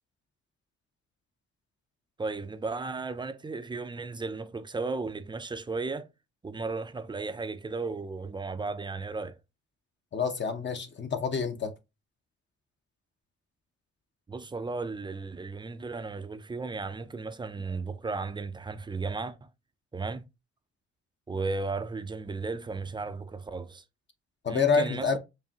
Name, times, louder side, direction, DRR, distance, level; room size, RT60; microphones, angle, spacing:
voice 1, 2.2-6.1 6.4-9.4 14.3-19.5 19.9-20.3 21.3-23.8 24.5-25.2, right 3 dB, 15° right, 0.4 m, -35 dB
voice 2, 10.1-11.7 24.4-25.2, left 5 dB, 40° left, 0.7 m, -27 dB
4.8 x 2.6 x 2.8 m
cardioid pair, 90°, 30 cm